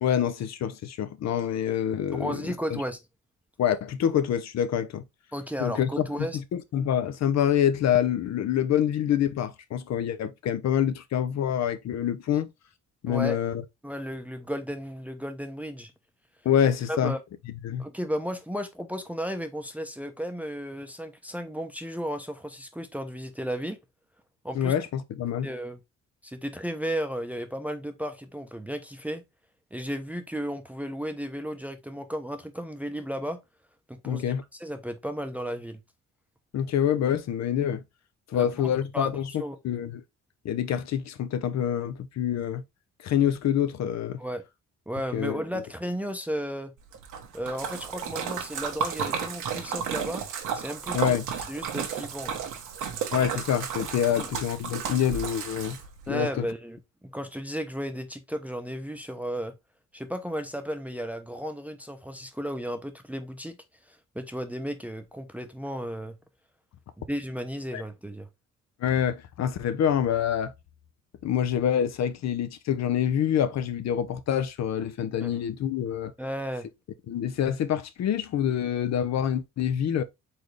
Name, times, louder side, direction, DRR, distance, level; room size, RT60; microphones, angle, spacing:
voice 1, 0.0-2.4 2.7-2.8 3.6-5.0 5.6-12.5 13.0-13.6 16.4-17.2 17.6-17.9 24.5-25.5 34.0-34.4 36.5-37.8 38.3-39.3 39.6-40.0 40.4-42.6 43.0-44.2 45.1-45.4 50.9-51.2 53.1-55.8 56.1-56.5 67.7-67.8 68.8-70.5 71.2-76.1 77.1-80.0, left 9 dB, 60° left, 0.7 m, -26 dB
voice 2, 2.1-3.0 5.3-6.4 13.1-13.4 13.8-15.9 16.9-17.2 17.8-23.8 24.4-24.7 25.4-25.8 26.2-29.2 29.7-33.4 33.9-34.3 34.6-35.8 38.3-39.1 39.4-39.6 44.2-44.4 44.9-46.7 47.3-50.3 50.5-51.1 51.5-52.4 54.1-54.3 56.1-59.5 59.9-63.6 63.9-66.2 67.0-68.3 75.2-75.3 76.2-76.7, equal, 5° right, 0.7 m, -34 dB
Splash splatter, 46.9-56.0, right 7 dB, 80° right, 1.2 m, -33 dB
4.3 x 3.7 x 3.2 m
cardioid pair, 90°, 30 cm